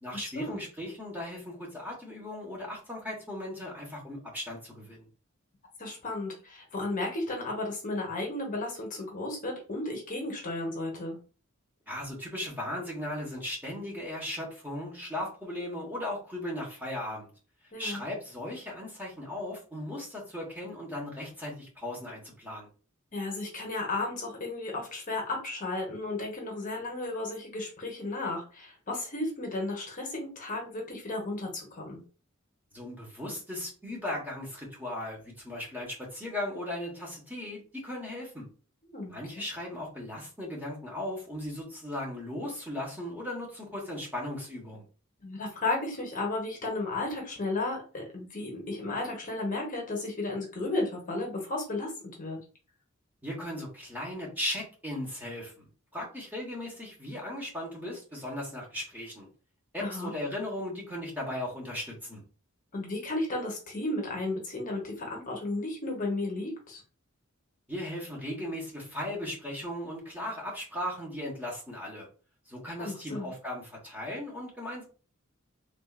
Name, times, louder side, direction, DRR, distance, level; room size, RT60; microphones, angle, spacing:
voice 1, 0.0-5.1 11.9-17.3 17.8-22.7 32.7-38.5 39.1-44.8 53.2-55.7 55.9-59.3 59.7-62.2 67.7-72.1 72.5-74.8, left 1 dB, 10° right, -3 dB, 1.0 m, -37 dB
voice 2, 5.8-11.2 17.7-18.0 23.1-32.0 38.9-39.4 45.2-51.9 52.2-52.4 59.8-60.1 62.7-66.8 72.8-73.3, left 2 dB, 40° left, 0 dB, 0.9 m, -34 dB
3.3 x 2.4 x 2.4 m, 0.37 s
head